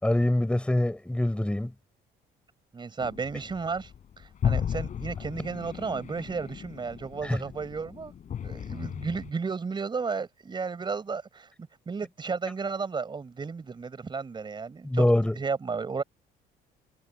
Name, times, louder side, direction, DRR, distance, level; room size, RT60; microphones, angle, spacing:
voice 1, 0.0-1.7 7.2-7.4 14.8-15.3, left 1 dB, 5° left, 5.7 m, -24 dB
voice 2, 2.7-3.9 4.2-8.1 8.4-15.0 15.3-16.0, right 5 dB, 25° right, 4.6 m, -33 dB
bm Monster, 3.0-9.3, left 8 dB, 50° left, 4.6 m, -35 dB
cardioid pair, 110°, 17 cm